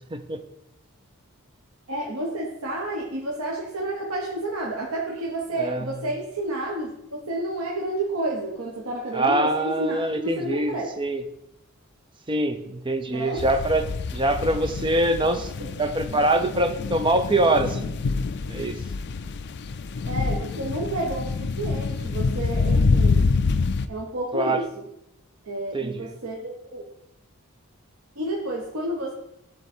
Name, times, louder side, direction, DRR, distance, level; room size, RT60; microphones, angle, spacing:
voice 1, 1.9-10.9 13.1-13.4 15.3-15.7 16.1-16.5 20.1-23.2 23.9-24.8 25.4-26.9 28.2-29.1, right 1 dB, 80° right, -2 dB, 1.1 m, -30 dB
voice 2, 5.6-5.9 9.1-11.2 12.3-17.9 18.5-18.8 24.3-24.6 25.7-26.1, right 1 dB, 20° right, 7 dB, 0.6 m, -24 dB
sound 1, 13.4-23.9, left 4 dB, 50° left, 0.4 m, -26 dB
11.5 x 3.8 x 4.4 m, 0.81 s
head